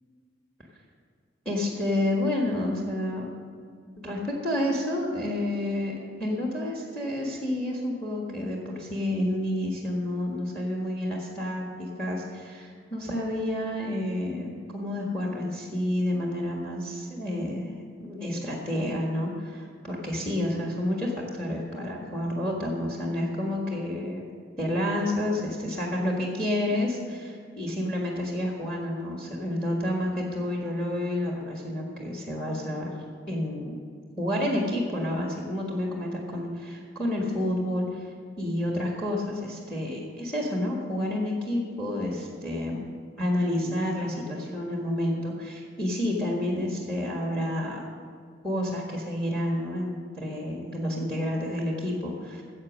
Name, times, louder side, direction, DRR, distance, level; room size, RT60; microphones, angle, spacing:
voice 1, 1.4-3.3 4.0-17.7 18.0-24.2 24.6-32.9 33.3-33.8 34.2-38.1 38.4-42.8 43.2-47.9 48.4-52.4, left 1 dB, 5° left, -1 dB, 1.6 m, -29 dB
14.5 x 8.0 x 6.3 m, 2.1 s
head